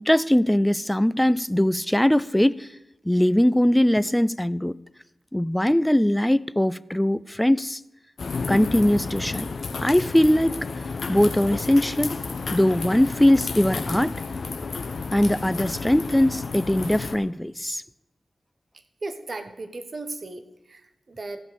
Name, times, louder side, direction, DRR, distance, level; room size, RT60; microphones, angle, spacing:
voice 1, 0.0-2.7 3.1-4.8 5.3-7.8 8.5-9.5 9.8-10.7 11.1-12.1 12.5-14.2 15.1-17.8, left 1 dB, 10° left, 0.4 m, -21 dB
sound 1, 8.2-17.2, left 4 dB, 70° left, 0.9 m, -31 dB
voice 2, 19.0-21.4, right 2 dB, 55° right, 1.2 m, -36 dB
14.5 x 5.7 x 6.9 m
cardioid pair, 45°, 0 cm